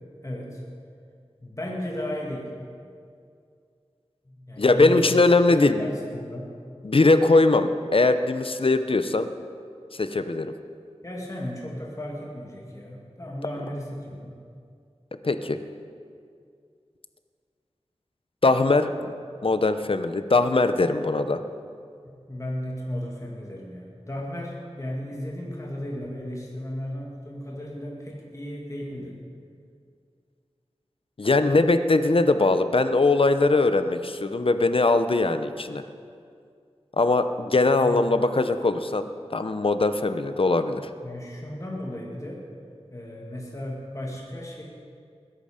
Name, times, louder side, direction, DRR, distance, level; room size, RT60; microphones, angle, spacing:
voice 1, 0.2-0.6 1.4-2.5 4.3-5.1 5.5-6.5 11.0-14.4 22.0-29.2 37.7-38.1 41.0-42.4 42.9-44.6, left 1 dB, 30° left, -2 dB, 2.3 m, -35 dB
voice 2, 4.6-5.9 6.8-9.3 9.9-10.5 15.2-15.6 18.4-19.1 19.4-21.4 31.2-35.8 37.0-40.8, left 3 dB, 55° left, 10 dB, 0.8 m, -21 dB
20.5 x 11.0 x 5.1 m, 2.3 s
wide cardioid pair, 60°, 11 cm